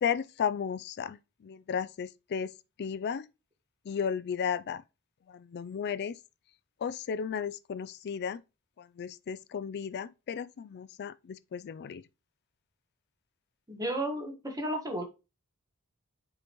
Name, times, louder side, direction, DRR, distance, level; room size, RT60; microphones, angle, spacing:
voice 1, 0.0-2.5 2.8-3.3 3.8-4.8 5.3-6.2 6.8-8.4 8.8-12.0, left 7 dB, 45° left, 0.3 m, -34 dB
voice 2, 13.7-15.0, right 1 dB, 15° right, 1.4 m, -33 dB
7.7 x 4.9 x 3.0 m
head